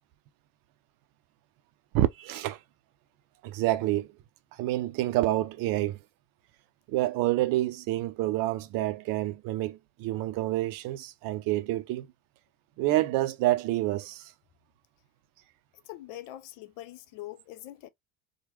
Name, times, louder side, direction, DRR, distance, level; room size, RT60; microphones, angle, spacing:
voice 1, 1.9-2.6 3.4-4.1 4.6-6.0 6.9-12.1 12.8-14.3, right 16 dB, 50° right, 0.6 m, -28 dB
voice 2, 15.9-17.9, left 15 dB, 60° left, 0.7 m, -43 dB
3.1 x 2.3 x 2.8 m
hypercardioid pair, 65°, 44 cm